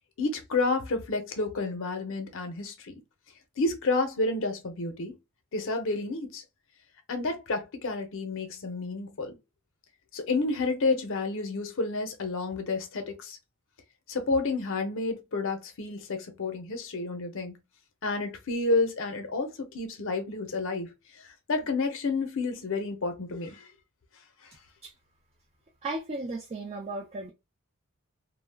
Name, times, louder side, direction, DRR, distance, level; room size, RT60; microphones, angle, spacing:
voice 1, 0.2-3.0 3.6-5.1 5.5-6.4 7.1-9.4 10.1-13.4 14.1-17.5 18.0-20.9 21.5-23.5, left 3 dB, 60° left, 0.6 m, -30 dB
voice 2, 25.8-27.3, right 2 dB, 30° right, 0.4 m, -35 dB
2.2 x 2.0 x 3.3 m
head